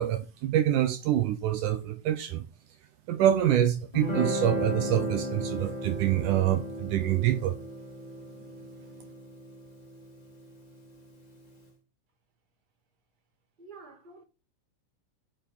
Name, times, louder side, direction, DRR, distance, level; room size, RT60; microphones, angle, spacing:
voice 1, 0.0-2.4 3.1-7.6, right 11 dB, 75° right, 2.2 m, -26 dB
Guitar, 3.9-11.1, equal, 15° left, 1.9 m, -35 dB
voice 2, 13.6-14.2, right 4 dB, 15° right, 1.9 m, -48 dB
7.5 x 6.9 x 7.5 m
omnidirectional pair, 4.0 m